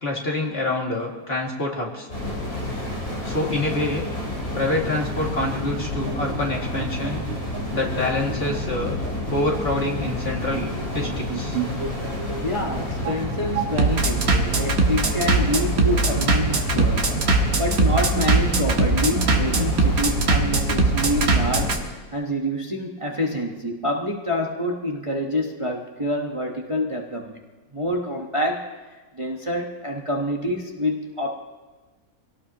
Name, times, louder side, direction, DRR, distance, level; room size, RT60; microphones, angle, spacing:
voice 1, 0.0-2.1 3.2-4.1 4.5-7.2 7.7-9.0 9.3-11.6, left 2 dB, 45° left, -2 dB, 2.5 m, -26 dB
sound 1, 2.1-21.8, left 1 dB, 85° left, 5.7 m, -29 dB
Bass drum, 5.8-21.8, right 3 dB, 75° right, 1.9 m, -22 dB
voice 2, 12.4-17.2 17.6-21.8 22.1-27.4 27.7-28.7 29.2-31.3, left 1 dB, 25° right, -1 dB, 1.2 m, -27 dB
25.0 x 18.0 x 2.9 m, 1.3 s
omnidirectional pair, 1.5 m